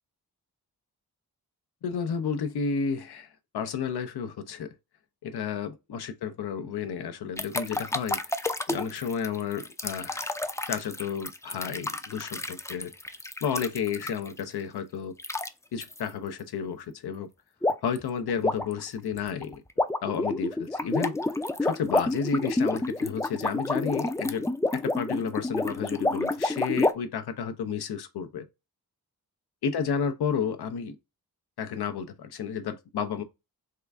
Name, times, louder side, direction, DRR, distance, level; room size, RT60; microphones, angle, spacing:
voice 1, 1.8-4.7 5.2-8.2 8.7-10.2 10.7-12.9 13.4-15.1 15.7-17.3 17.8-19.6 20.0-21.2 21.6-28.5 29.6-31.0 31.6-33.2, left 6 dB, 90° left, 0.6 m, -31 dB
sound 1, 7.4-14.4 15.2-15.5 15.8-16.0 17.6-18.0 18.3-26.9, left 2 dB, 10° left, 0.4 m, -29 dB
3.7 x 2.3 x 3.3 m
cardioid pair, 75°, 38 cm